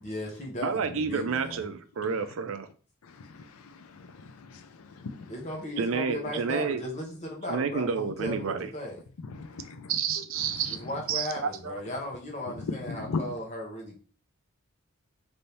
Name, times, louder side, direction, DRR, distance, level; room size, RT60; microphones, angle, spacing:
voice 1, 0.0-1.6 5.3-9.0 10.7-14.0, left 1 dB, 30° left, 0.8 m, -36 dB
voice 2, 0.6-2.7 5.8-6.8 7.5-8.7 9.9-10.8 11.1-11.7, right 6 dB, 65° right, 0.4 m, -30 dB
voice 3, 3.0-5.3 9.2-9.9 10.4-10.7 12.6-13.3, left 4 dB, 80° left, 0.5 m, -38 dB
3.4 x 2.6 x 4.2 m
head